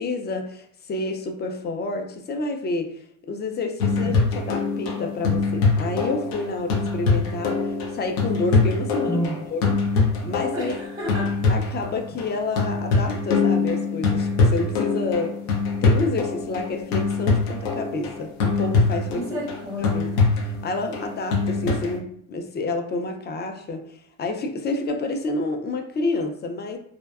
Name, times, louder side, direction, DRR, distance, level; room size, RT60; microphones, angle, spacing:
voice 1, 0.0-3.0 3.3-9.2 9.5-9.8 10.2-10.7 11.5-15.4 15.8-19.4 19.8-26.8, left 3 dB, 30° left, 4 dB, 0.4 m, -29 dB
sound 1, 3.8-22.0, left 4 dB, 90° left, 0.6 m, -23 dB
voice 2, 9.1-9.4 10.5-11.4 19.1-20.0, equal, 10° right, -2 dB, 0.6 m, -30 dB
2.6 x 2.1 x 2.3 m, 0.64 s
cardioid pair, 105°, 36 cm